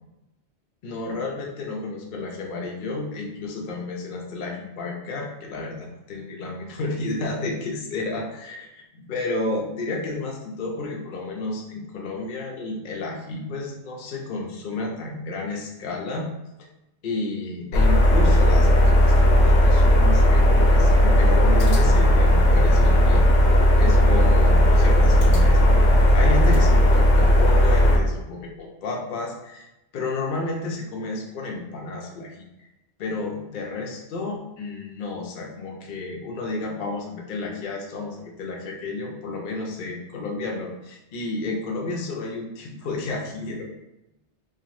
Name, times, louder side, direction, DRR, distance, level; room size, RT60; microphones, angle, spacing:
voice 1, 0.8-8.6 8.9-16.3 17.0-23.2 23.5-25.6 26.1-29.7 29.9-32.7 33.0-43.6, left 3 dB, 55° left, 0 dB, 0.7 m, -31 dB
sound 1, 17.7-28.0, equal, 80° left, 0.9 m, -16 dB
3.0 x 2.5 x 2.5 m, 0.93 s
omnidirectional pair, 1.2 m